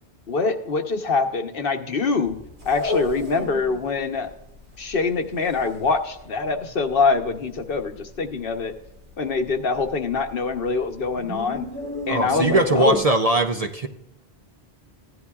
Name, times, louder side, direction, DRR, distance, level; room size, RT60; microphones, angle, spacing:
voice 1, 0.3-2.4 2.6-4.3 4.8-8.7 9.2-11.7 12.1-13.0, left 4 dB, 60° left, 6 dB, 1.1 m, -24 dB
sound 1, 2.2-3.8 4.1-4.2 4.4-6.7 7.0-7.2 7.5-8.1 8.4-8.5 8.9-9.0 9.4-10.7 11.0-13.0, left 1 dB, 90° right, 2.8 m, -32 dB
voice 2, 12.1-13.9, right 2 dB, 45° right, 6 dB, 0.6 m, -20 dB
16.0 x 11.0 x 2.4 m, 0.85 s
omnidirectional pair, 1.1 m